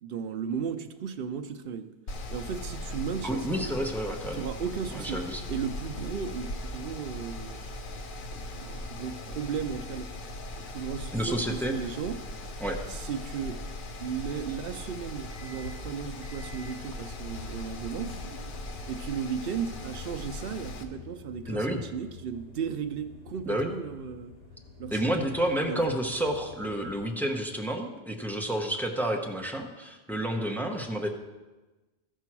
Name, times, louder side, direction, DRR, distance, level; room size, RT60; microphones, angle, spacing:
voice 1, 0.0-1.9 2.3-3.6 4.3-7.6 8.2-10.1 10.6-12.2 12.9-13.6 14.0-18.2 18.9-24.3 24.8-25.1 25.6-25.8, right 7 dB, 65° right, 7 dB, 0.8 m, -35 dB
Mechanical fan, 2.1-20.8, left 1 dB, 55° left, 0.9 m, -39 dB
voice 2, 3.2-4.4 4.9-5.4 11.1-11.8 12.6-12.8 21.5-21.8 23.5-23.7 24.9-31.1, right 1 dB, ahead, 1 dB, 0.9 m, -30 dB
sound 1, 15.3-27.1, left 4 dB, 40° left, 1.4 m, -49 dB
13.5 x 4.5 x 6.0 m, 1.2 s
omnidirectional pair, 1.1 m